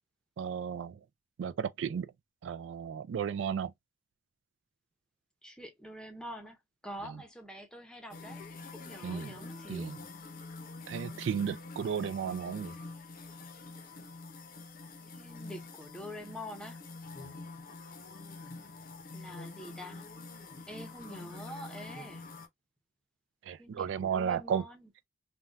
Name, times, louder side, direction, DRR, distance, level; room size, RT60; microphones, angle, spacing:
voice 1, 0.4-1.0 1.4-2.1 2.4-3.7 9.0-9.3 9.7-10.0 10.9-12.7 17.2-17.3 23.5-24.6, right 7 dB, 70° right, 0.3 m, -34 dB
voice 2, 5.4-6.6 6.8-8.4 8.7-10.0 15.1-16.8 19.1-20.1 20.7-22.3 23.6-24.9, equal, 5° left, 0.7 m, -46 dB
sound 1, 8.1-22.5, left 3 dB, 50° left, 0.6 m, -46 dB
3.4 x 2.2 x 2.5 m
head